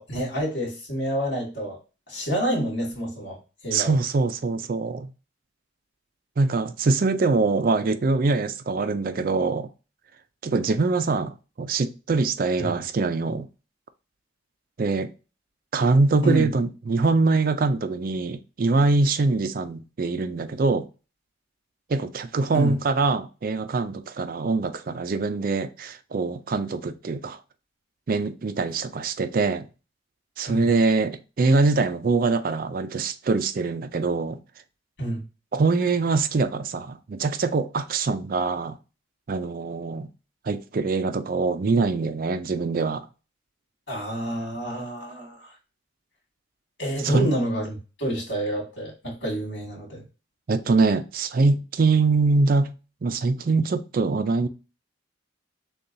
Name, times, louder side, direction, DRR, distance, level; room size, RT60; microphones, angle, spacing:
voice 1, 0.0-1.8 2.1-3.4 3.6-4.0 12.6-12.8 16.2-16.5 22.5-22.8 30.5-30.7 35.0-35.2 43.9-45.5 46.8-50.0, right 1 dB, 60° left, 2.4 m, -28 dB
voice 2, 3.7-5.1 6.4-9.7 10.4-13.5 14.8-15.1 15.7-20.9 21.9-27.4 28.1-29.7 30.4-34.4 35.5-38.7 39.3-40.1 40.5-43.0 47.0-47.3 50.5-52.7 53.0-54.5, right 3 dB, 45° right, 0.4 m, -23 dB
6.6 x 2.3 x 2.6 m
head